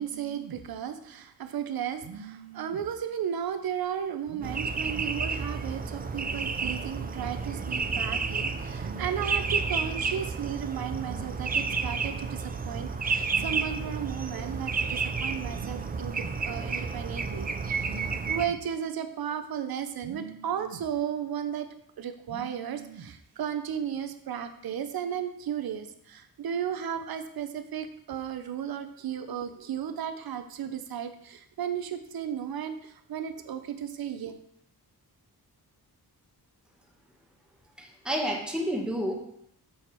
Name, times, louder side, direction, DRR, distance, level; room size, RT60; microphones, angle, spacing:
voice 1, 0.0-17.5 17.8-21.7 22.0-34.3, right 8 dB, 65° right, 9 dB, 0.7 m, -34 dB
sound 1, 4.4-18.5, right 4 dB, 25° right, 0.4 m, -31 dB
voice 2, 37.8-39.1, equal, ahead, 0 dB, 1.0 m, -30 dB
6.4 x 4.2 x 4.4 m, 0.73 s
wide cardioid pair, 140°, 39 cm